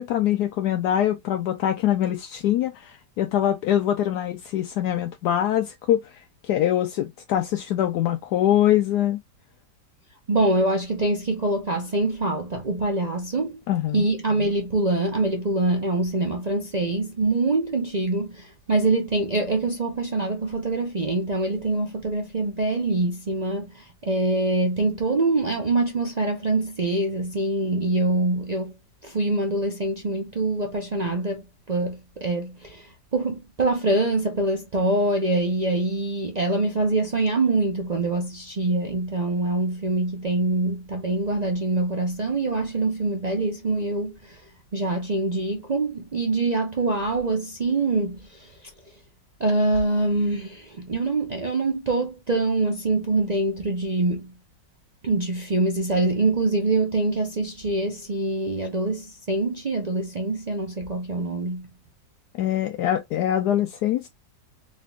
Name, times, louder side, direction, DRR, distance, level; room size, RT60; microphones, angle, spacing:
voice 1, 0.0-9.2 13.7-14.1 62.3-64.1, left 11 dB, 75° left, 1.1 m, -23 dB
voice 2, 10.3-13.6 13.9-28.7 29.0-44.4 44.7-48.7 49.4-54.3 55.0-61.7, right 2 dB, 50° right, 0.5 m, -24 dB
4.2 x 3.6 x 2.3 m
omnidirectional pair, 1.8 m